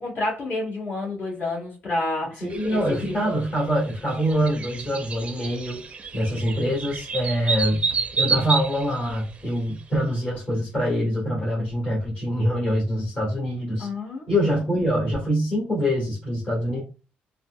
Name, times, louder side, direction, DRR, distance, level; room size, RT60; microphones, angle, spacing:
voice 1, 0.0-2.8 3.1-3.4 13.8-14.6, left 2 dB, 50° left, -5 dB, 1.5 m, -30 dB
voice 2, 2.4-5.8 6.1-7.8 8.1-13.9 14.3-16.8, equal, 35° left, -5 dB, 1.6 m, -24 dB
sound 1, 2.5-9.8, right 5 dB, 30° right, 0.5 m, -30 dB
4.0 x 2.1 x 2.2 m, 0.33 s
cardioid pair, 110°, 4 cm